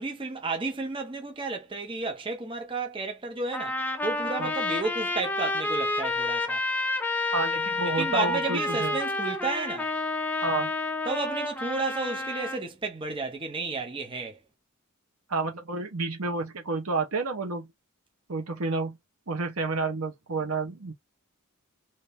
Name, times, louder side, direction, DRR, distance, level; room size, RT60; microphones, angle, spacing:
voice 1, 0.0-3.8 4.0-6.6 7.9-9.9 11.1-14.4, right 3 dB, 25° right, 0.7 m, -32 dB
Trumpet, 3.5-12.6, left 2 dB, 10° left, 0.5 m, -30 dB
voice 2, 7.3-9.0 10.4-10.7 15.3-17.7 18.3-19.0 19.3-20.9, right 3 dB, 85° right, 1.1 m, -30 dB
2.9 x 2.8 x 3.4 m
head